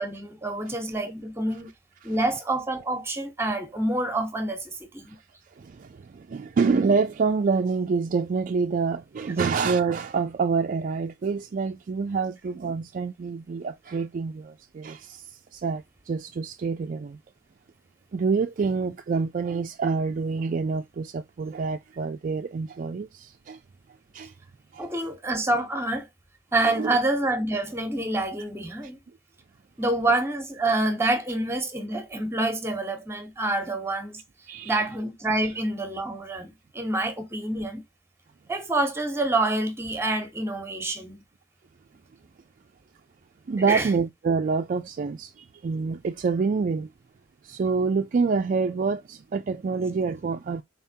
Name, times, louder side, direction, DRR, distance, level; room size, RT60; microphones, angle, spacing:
voice 1, 0.0-1.7 2.0-5.1 24.8-26.1 26.5-29.0 29.8-34.2 34.6-37.8 38.5-41.2 43.7-43.9, right 2 dB, 15° right, 1.0 m, -27 dB
voice 2, 5.6-15.3 15.5-17.2 18.1-23.6 24.1-24.3 24.7-24.9 26.6-27.0 34.5-34.8 43.5-46.9 47.4-50.6, right 4 dB, 40° right, 0.3 m, -27 dB
4.3 x 3.5 x 2.7 m
head